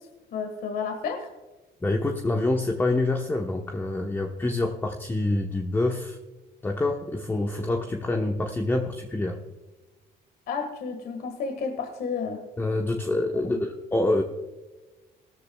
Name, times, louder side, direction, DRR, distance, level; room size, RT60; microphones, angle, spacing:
voice 1, 0.3-1.3 10.5-12.5 13.4-13.6, left 5 dB, 65° left, 5 dB, 1.6 m, -31 dB
voice 2, 1.8-6.2 6.6-9.4 12.6-14.2, left 2 dB, 15° left, 3 dB, 1.0 m, -26 dB
17.0 x 13.5 x 2.3 m, 1.2 s
cardioid pair, 110°, 17 cm